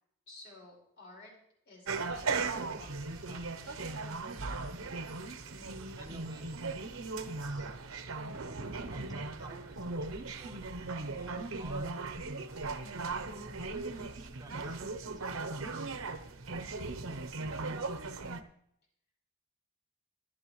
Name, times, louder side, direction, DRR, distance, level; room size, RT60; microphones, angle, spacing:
voice 1, 0.3-1.3 1.6-4.0, left 2 dB, 55° left, -2 dB, 5.0 m, -54 dB
sound 1, 1.9-18.4, right 3 dB, 85° right, 0.9 m, -38 dB
voice 2, 6.0-6.8 7.2-7.7 8.8-10.8 11.2-15.6, right 1 dB, 20° right, 1 dB, 1.6 m, -54 dB
23.0 x 7.8 x 3.2 m, 0.72 s
head